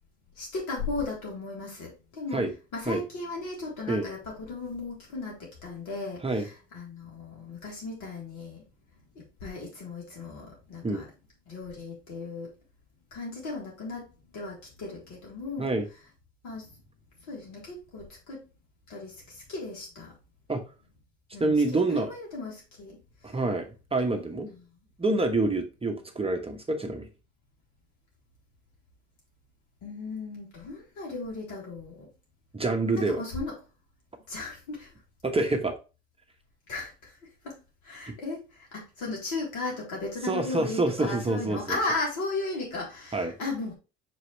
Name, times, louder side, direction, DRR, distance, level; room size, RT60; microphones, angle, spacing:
voice 1, 0.4-8.7 9.1-11.1 11.5-12.5 13.1-15.7 16.4-16.8 17.2-18.5 18.9-20.1 21.3-23.4 24.0-24.6 29.8-32.1 32.9-33.5 34.3-34.9 36.7-43.7, left 3 dB, 60° left, -2 dB, 3.8 m, -36 dB
voice 2, 21.4-22.1 23.2-24.5 25.0-27.1 32.5-33.2 35.2-35.8 40.2-41.8 43.1-43.3, right 2 dB, 15° right, 4 dB, 1.2 m, -27 dB
6.4 x 4.8 x 3.3 m, 0.30 s
hypercardioid pair, 60°, 34 cm